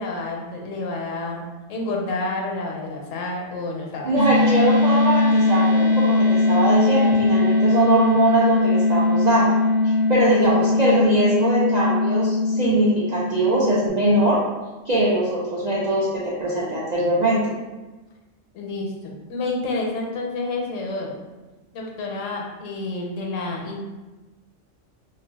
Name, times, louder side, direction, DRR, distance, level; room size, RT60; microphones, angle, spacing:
voice 1, 0.0-4.1 10.2-10.7 18.5-21.1 21.7-23.8, left 2 dB, 85° left, 0 dB, 1.0 m, -29 dB
voice 2, 4.0-9.5 9.8-14.4 14.8-17.4, right 1 dB, 65° right, -7 dB, 0.4 m, -21 dB
sound 1, 4.2-13.9, left 2 dB, 60° left, 0.6 m, -20 dB
2.3 x 2.2 x 3.3 m, 1.2 s
omnidirectional pair, 1.3 m